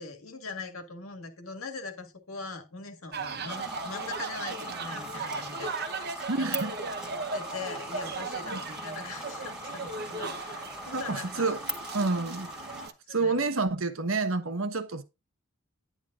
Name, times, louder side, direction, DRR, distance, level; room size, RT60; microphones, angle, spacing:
voice 1, 0.0-6.7 7.3-11.4 13.1-13.4, left 4 dB, 85° left, 1.9 m, -41 dB
sound 1, 3.1-12.9, right 4 dB, 50° right, 1.0 m, -37 dB
sound 2, 3.5-12.9, equal, 5° right, 1.7 m, -40 dB
voice 2, 6.3-6.7 8.5-8.6 10.9-11.6 11.9-12.8 13.1-15.0, right 3 dB, 70° right, 1.2 m, -29 dB
10.5 x 9.9 x 2.5 m
head